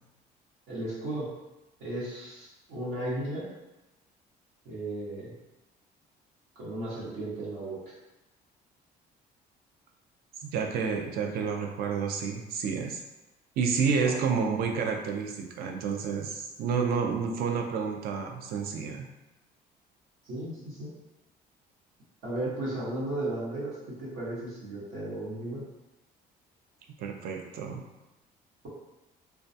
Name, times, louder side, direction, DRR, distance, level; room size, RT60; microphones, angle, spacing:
voice 1, 0.7-1.3 1.8-3.5 4.6-5.3 6.5-7.8 13.8-14.1 20.2-20.9 22.2-25.7, right 1 dB, 85° right, -8 dB, 1.0 m, -35 dB
voice 2, 10.4-13.0 13.6-19.1 27.0-27.8, right 6 dB, 65° right, 3 dB, 0.4 m, -30 dB
2.2 x 2.2 x 2.6 m, 1.0 s
cardioid pair, 110°, 17 cm